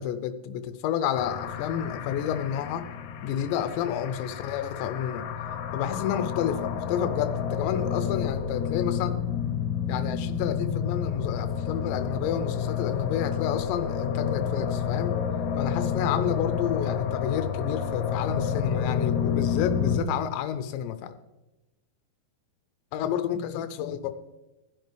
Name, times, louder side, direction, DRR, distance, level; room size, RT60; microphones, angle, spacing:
voice 1, 0.0-2.9 3.2-5.3 5.7-9.2 9.9-15.2 15.6-21.1 22.9-24.1, left 9 dB, 90° left, 10 dB, 2.9 m, -30 dB
sound 1, 1.2-20.0, left 7 dB, 75° left, 2.1 m, -30 dB
16.0 x 10.5 x 3.4 m, 0.99 s
omnidirectional pair, 5.0 m